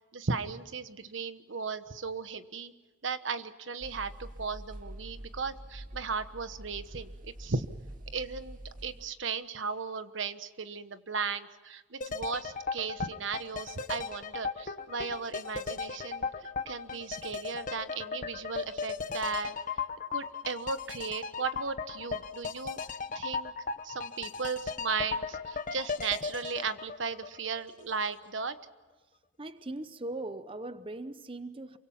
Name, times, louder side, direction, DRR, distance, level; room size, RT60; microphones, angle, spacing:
voice 1, 0.1-2.7 3.0-7.7 8.1-16.3 16.6-19.6 20.1-22.8 23.1-23.5 23.8-28.6, right 5 dB, 75° right, 1.2 m, -36 dB
sound 1, 3.8-9.1, right 1 dB, 45° right, 2.1 m, -46 dB
sound 2, 12.0-27.9 28.2-28.3, left 5 dB, 45° left, 1.2 m, -37 dB
voice 2, 29.4-31.8, right 2 dB, 30° right, 0.8 m, -39 dB
28.0 x 24.5 x 5.8 m
head